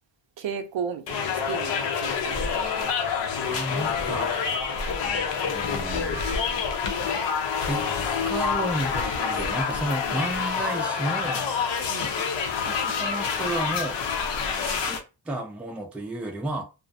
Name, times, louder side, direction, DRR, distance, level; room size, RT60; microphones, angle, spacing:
voice 1, 0.4-2.6 4.9-5.2 10.1-10.2 11.9-12.1, right 7 dB, 80° right, 0.6 m, -35 dB
sound 1, 1.1-15.0, left 6 dB, 75° left, 0.6 m, -27 dB
voice 2, 3.3-4.3 5.0-6.2 7.6-7.9 8.2-11.5 12.2-12.3 12.6-14.0 14.6-16.6, right 1 dB, 5° right, 0.3 m, -32 dB
2.4 x 2.0 x 2.6 m
wide cardioid pair, 145°, 44 cm